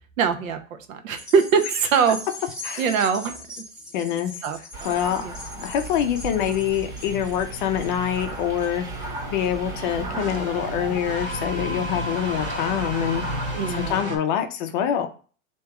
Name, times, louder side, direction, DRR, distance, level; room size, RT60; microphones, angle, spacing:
voice 1, 0.2-2.2 2.8-3.4 4.4-5.3 13.5-14.1, right 6 dB, 75° right, 8 dB, 0.9 m, -23 dB
sound 1, 1.1-9.8 10.2-10.3, left 2 dB, ahead, 0.7 m, -40 dB
voice 2, 3.9-4.3 4.8-5.2 5.6-8.9 9.3-13.2 13.7-15.1, left 9 dB, 40° left, 6 dB, 0.5 m, -25 dB
sound 2, 4.7-14.0, right 3 dB, 50° right, 1.3 m, -36 dB
sound 3, 5.1-14.2, equal, 25° right, 1.1 m, -35 dB
3.4 x 2.9 x 4.5 m, 0.39 s
supercardioid pair, 150°, 41 cm